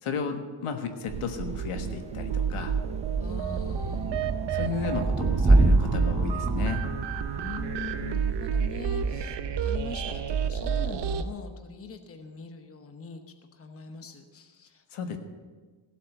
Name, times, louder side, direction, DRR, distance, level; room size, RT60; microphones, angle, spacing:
voice 1, 0.0-2.7 4.2-6.8 14.9-15.2, left 6 dB, 85° left, 5 dB, 1.5 m, -34 dB
Thunder / Rain, 1.1-9.3, right 2 dB, 15° right, 0.5 m, -28 dB
sound 1, 1.1-11.2, right 7 dB, 55° right, 0.8 m, -30 dB
voice 2, 3.2-4.3 7.4-13.2 13.5-15.2, left 4 dB, 30° left, 5 dB, 1.0 m, -42 dB
15.5 x 8.2 x 6.5 m, 1.4 s
wide cardioid pair, 170°, 49 cm